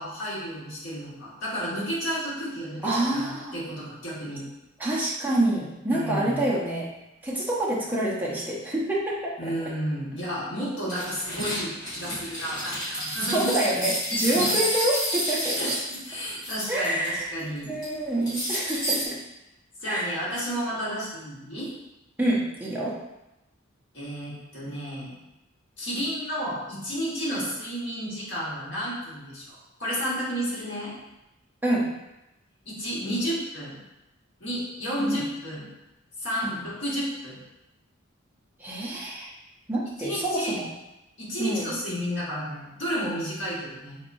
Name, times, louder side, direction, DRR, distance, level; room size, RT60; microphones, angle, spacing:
voice 1, 0.0-4.4 5.9-6.5 9.4-13.6 14.2-14.6 15.5-17.7 19.8-21.7 23.9-25.2 25.8-30.9 32.6-33.8 34.4-35.7 36.2-37.4 40.0-40.6 41.2-44.0, equal, 60° left, -7 dB, 1.4 m, -32 dB
voice 2, 2.8-3.5 4.8-6.9 7.2-9.3 13.3-15.6 16.7-17.4 17.7-19.2 19.8-20.1 22.2-23.0 27.3-27.4 31.6-31.9 35.0-35.2 36.4-36.6 38.6-39.3 39.7-40.7 41.4-41.7, right 1 dB, 10° right, -6 dB, 0.7 m, -27 dB
sound 1, 10.9-17.1 17.4-17.9 18.3-19.1, equal, 20° left, 1.5 m, -29 dB
4.0 x 3.0 x 2.6 m, 0.94 s
head